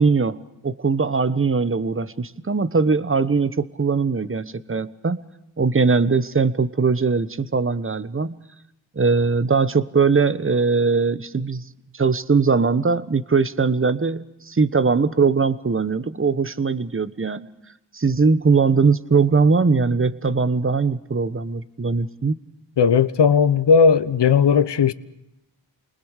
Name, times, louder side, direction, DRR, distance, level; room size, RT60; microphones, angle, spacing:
voice 1, 0.0-5.2 5.6-8.4 8.9-11.7 11.9-17.5 17.9-22.4, right 4 dB, 25° right, 1.2 m, -20 dB
voice 2, 22.8-24.9, left 6 dB, 60° left, 1.1 m, -16 dB
29.0 x 20.0 x 6.6 m
cardioid pair, 50°, 47 cm